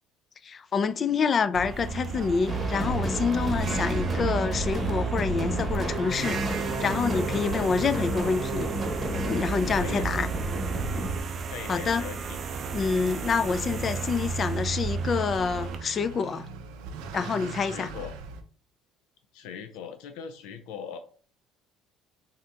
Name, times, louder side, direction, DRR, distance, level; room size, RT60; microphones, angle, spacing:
voice 1, 0.4-8.7 9.1-10.3 11.7-12.0 12.7-16.5 17.1-17.9, left 5 dB, 30° left, 0.3 m, -27 dB
sound 1, 1.5-15.8, right 4 dB, 35° right, 0.4 m, -34 dB
sound 2, 2.5-11.2, right 1 dB, 15° right, 1.0 m, -31 dB
voice 2, 7.3-7.7 9.8-10.1 11.5-12.4 13.7-14.0 17.6-18.1 19.3-21.0, left 7 dB, 85° left, 0.5 m, -40 dB
Motor vehicle (road) / Accelerating revving vroom, 12.5-18.4, right 4 dB, 90° right, 0.6 m, -41 dB
3.6 x 2.8 x 3.4 m
cardioid pair, 135°, 0 cm